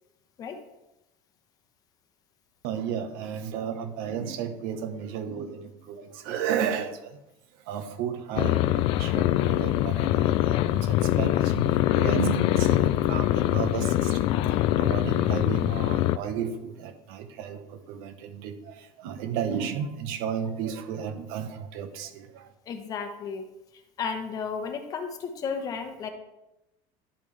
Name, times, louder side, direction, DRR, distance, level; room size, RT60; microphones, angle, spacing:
voice 1, 2.6-7.2 7.5-22.5, right 8 dB, 70° right, 8 dB, 1.1 m, -33 dB
cat purr, 8.4-16.2, left 14 dB, 50° left, 0.4 m, -23 dB
voice 2, 22.7-26.1, left 5 dB, 30° left, 6 dB, 1.0 m, -34 dB
11.5 x 5.3 x 3.3 m, 0.93 s
cardioid pair, 160°, 12 cm